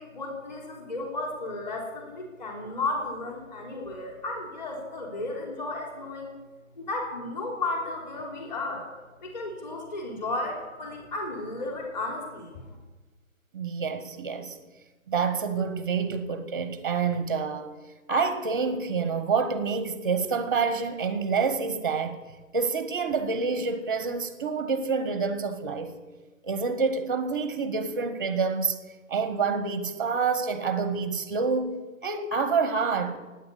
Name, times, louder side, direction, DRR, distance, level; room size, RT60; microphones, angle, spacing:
voice 1, 0.0-6.3 6.8-8.8 9.2-12.6, left 2 dB, 30° left, 3.9 m, -34 dB
voice 2, 13.5-14.6 15.1-17.7 18.1-22.2 22.5-25.9 26.4-28.8 29.1-31.8 32.0-33.2, right 5 dB, 15° right, 0.9 m, -27 dB
16.0 x 9.8 x 8.2 m
hypercardioid pair, 170°, 41 cm